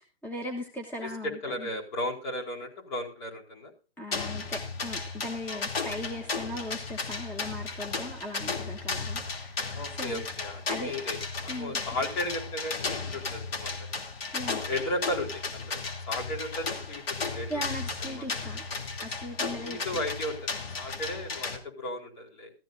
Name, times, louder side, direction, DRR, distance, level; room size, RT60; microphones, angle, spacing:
voice 1, 0.0-1.7 4.0-9.5 10.0-10.2 10.7-10.9 11.5-11.8 14.3-14.7 17.5-18.6 19.0-19.8, left 1 dB, 5° left, 2 dB, 1.1 m, -38 dB
voice 2, 1.0-3.7 5.5-5.6 9.7-13.9 14.7-17.6 18.0-18.3 19.4-22.5, left 1 dB, 45° left, 1 dB, 4.2 m, -35 dB
sound 1, 4.1-21.6, left 4 dB, 65° left, 3.0 m, -35 dB
16.0 x 14.0 x 2.6 m, 0.34 s
hypercardioid pair, 140°, 32 cm